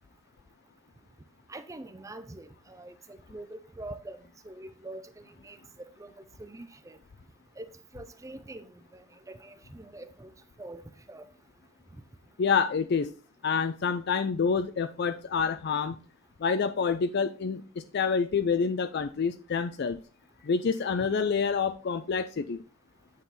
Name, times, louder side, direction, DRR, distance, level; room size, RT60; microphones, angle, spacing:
voice 1, 1.5-4.2 4.4-5.6 6.0-6.1 6.4-7.0 7.6-7.7 7.9-10.3 10.6-10.8 11.1-11.3, right 2 dB, 15° right, 0.5 m, -44 dB
voice 2, 12.4-13.1 13.4-16.0 16.4-20.0 20.4-22.6, left 5 dB, 55° left, 0.4 m, -27 dB
9.5 x 3.9 x 4.2 m
head